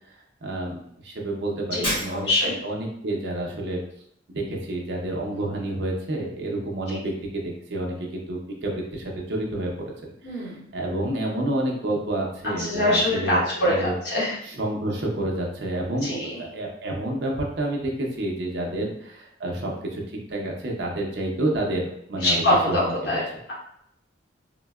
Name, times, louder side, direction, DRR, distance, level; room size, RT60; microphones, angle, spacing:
voice 1, 0.4-2.3 2.6-3.8 4.3-9.7 10.0-13.9 14.6-22.8, right 1 dB, 65° right, -1 dB, 0.6 m, -29 dB
voice 2, 1.7-2.6 5.3-5.6 6.9-7.0 10.2-10.7 12.4-14.4 16.0-16.5 18.7-18.9 22.2-23.5, left 1 dB, 65° left, -5 dB, 1.0 m, -25 dB
Shatter, 1.8-2.6, equal, 25° left, 1.0 m, -30 dB
3.8 x 2.1 x 2.3 m, 0.71 s
head